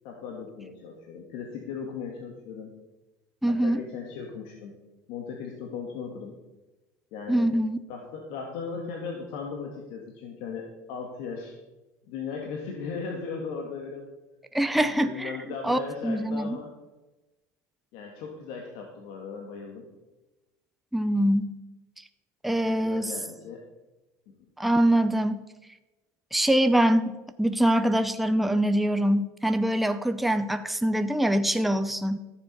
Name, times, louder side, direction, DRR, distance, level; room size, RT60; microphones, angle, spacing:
voice 1, 0.0-2.7 3.5-4.7 5.1-6.3 7.1-7.5 7.9-11.6 12.1-14.1 14.9-16.7 17.9-19.9 22.6-23.6 24.3-24.5, left 5 dB, 70° left, 1 dB, 1.8 m, -37 dB
voice 2, 3.4-3.8 7.3-7.8 14.5-15.3 15.6-16.6 20.9-21.6 22.4-23.1 24.6-25.4 26.3-32.2, right 1 dB, ahead, 8 dB, 0.6 m, -24 dB
13.5 x 7.4 x 5.3 m, 1.1 s
supercardioid pair, 115°, 9 cm